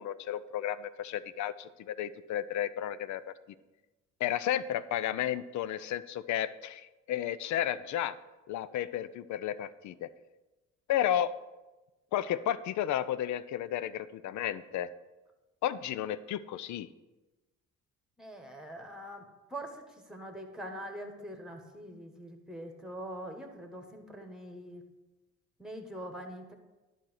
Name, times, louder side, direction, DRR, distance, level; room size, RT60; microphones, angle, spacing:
voice 1, 0.0-3.3 4.2-8.2 8.5-10.1 10.9-11.3 12.1-14.9 15.6-16.9, left 11 dB, 70° left, 16 dB, 0.5 m, -33 dB
voice 2, 18.2-19.2 19.5-24.8 25.6-26.5, right 1 dB, ahead, 5 dB, 1.5 m, -43 dB
10.5 x 4.4 x 6.3 m, 1.1 s
cardioid pair, 90°, 30 cm